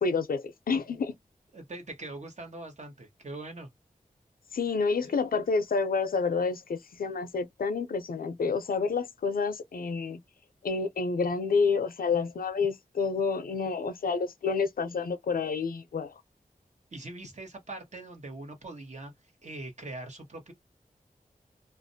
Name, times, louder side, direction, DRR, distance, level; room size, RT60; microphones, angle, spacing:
voice 1, 0.0-1.1 4.5-10.2 10.6-16.1, left 4 dB, 80° left, 0.5 m, -29 dB
voice 2, 1.5-3.7 5.0-5.2 16.9-20.5, right 2 dB, 50° right, 0.9 m, -42 dB
2.4 x 2.0 x 2.6 m
wide cardioid pair, 60°, 15 cm